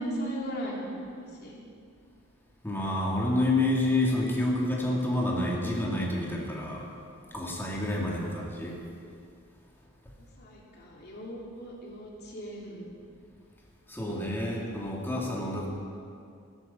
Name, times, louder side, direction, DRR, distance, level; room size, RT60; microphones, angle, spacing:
voice 1, 0.0-1.6 10.2-12.9 14.0-14.3, right 1 dB, 50° left, -4 dB, 3.4 m, -38 dB
voice 2, 2.6-6.9 7.3-8.8 13.9-15.7, left 1 dB, 10° left, -3 dB, 2.6 m, -28 dB
16.0 x 13.5 x 5.6 m, 2.4 s
head